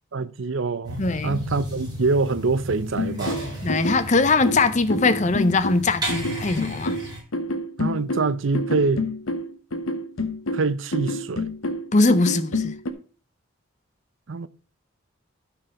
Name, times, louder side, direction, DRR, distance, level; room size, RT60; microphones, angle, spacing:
voice 1, 0.1-3.4 7.8-9.0 10.5-11.5 14.3-14.5, right 3 dB, 65° right, 0.6 m, -25 dB
sound 1, 0.8-7.2, equal, 20° right, 4.0 m, -34 dB
voice 2, 1.0-1.4 3.6-7.0 11.9-12.7, left 3 dB, 35° left, 0.6 m, -21 dB
sound 2, 3.0-12.9, left 1 dB, 85° left, 1.1 m, -28 dB
12.5 x 4.6 x 5.2 m
head